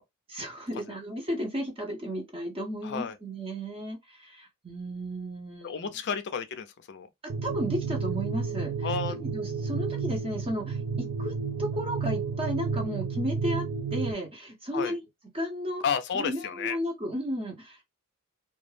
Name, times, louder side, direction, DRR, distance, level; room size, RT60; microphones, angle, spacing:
voice 1, 0.3-5.9 7.2-15.0 15.3-15.8 16.1-17.9, equal, 25° right, 0.7 m, -34 dB
voice 2, 2.8-3.2 5.6-7.1 8.8-9.1 14.7-14.9 15.8-16.8, left 6 dB, 50° left, 0.4 m, -31 dB
sound 1, 7.3-14.1, right 5 dB, 50° right, 0.3 m, -31 dB
2.2 x 2.0 x 3.2 m
head